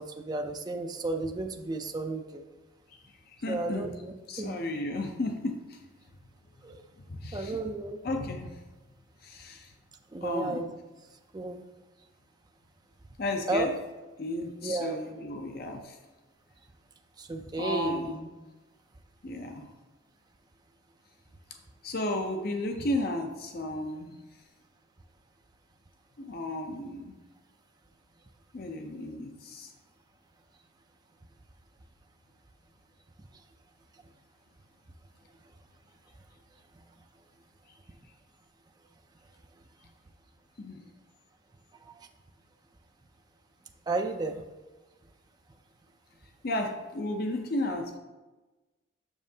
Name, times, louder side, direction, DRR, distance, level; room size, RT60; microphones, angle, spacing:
voice 1, 0.0-2.4 3.5-4.6 6.6-6.8 7.3-8.0 10.1-10.6 11.3-11.6 13.5-13.7 14.6-15.0 17.2-18.2 41.8-42.0 43.9-44.4, right 2 dB, 20° right, 5 dB, 0.4 m, -33 dB
voice 2, 3.3-3.9 4.3-5.8 7.1-7.6 8.0-8.6 9.2-9.7 10.2-10.7 13.2-13.7 14.2-16.0 17.6-18.3 19.2-19.7 21.8-24.2 26.2-27.2 28.5-29.7 40.6-40.9 46.4-48.0, left 1 dB, 50° left, 4 dB, 0.5 m, -33 dB
7.2 x 6.2 x 2.7 m, 1.1 s
head